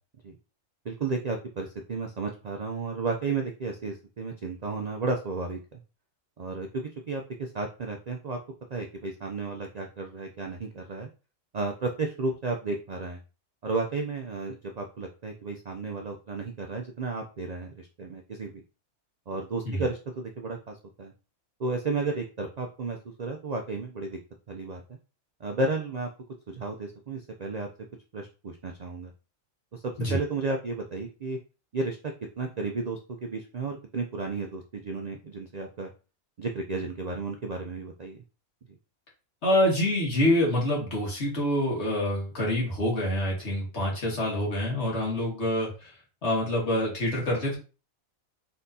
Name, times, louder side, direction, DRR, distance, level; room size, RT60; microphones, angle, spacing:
voice 1, 0.8-5.8 6.4-8.4 8.7-11.1 11.5-13.2 13.6-18.6 19.3-21.1 21.6-24.2 24.5-25.0 25.4-26.1 26.5-27.7 28.1-29.1 29.7-31.4 31.7-35.9 36.4-38.2 38.7-38.8, right 3 dB, 80° right, 2 dB, 0.3 m, -33 dB
voice 2, 39.4-45.9 46.2-47.6, left 1 dB, 50° left, -2 dB, 2.0 m, -26 dB
4.3 x 3.8 x 2.7 m, 0.33 s
omnidirectional pair, 1.4 m